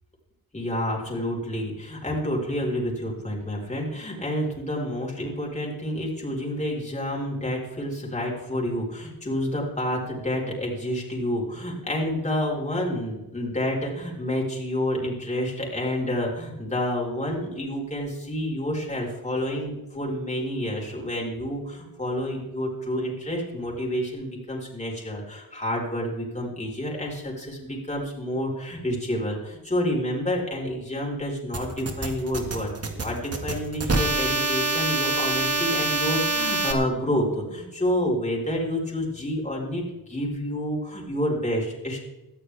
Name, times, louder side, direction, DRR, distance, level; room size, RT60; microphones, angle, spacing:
voice 1, 0.5-42.0, equal, 20° left, -2 dB, 4.4 m, -29 dB
sound 1, 31.5-36.7, right 2 dB, 40° right, 1.8 m, -25 dB
19.0 x 13.5 x 3.4 m, 0.98 s
wide cardioid pair, 130°, 37 cm